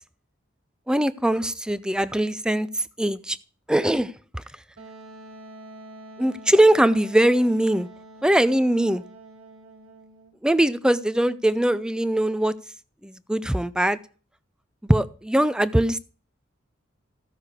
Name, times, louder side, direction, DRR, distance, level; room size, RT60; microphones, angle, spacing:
voice 1, 0.9-3.4 3.7-4.4 6.2-7.9 8.2-9.0 10.4-12.5 13.0-14.0 14.8-16.0, right 1 dB, 5° right, 15 dB, 0.4 m, -21 dB
Wind instrument woodwind instrument, 4.8-10.3, right 2 dB, 80° right, 2.1 m, -46 dB
14.5 x 6.6 x 4.8 m, 0.40 s
head